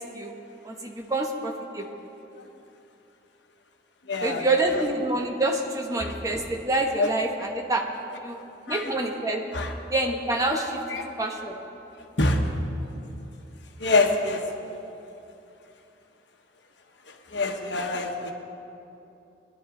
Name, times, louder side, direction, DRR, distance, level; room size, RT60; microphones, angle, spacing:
voice 1, 0.6-1.9 4.2-7.8 8.2-8.4 8.7-9.4 9.9-10.8 11.2-11.6, right 2 dB, 20° right, 1 dB, 1.0 m, -27 dB
voice 2, 4.1-4.8 6.0-6.1 7.0-7.1 8.7-8.9 9.5-9.7 10.9-11.1 12.2-12.4 13.8-14.4 17.1-18.3, left 2 dB, 75° left, 3 dB, 1.2 m, -26 dB
22.0 x 11.0 x 3.9 m, 2.9 s
head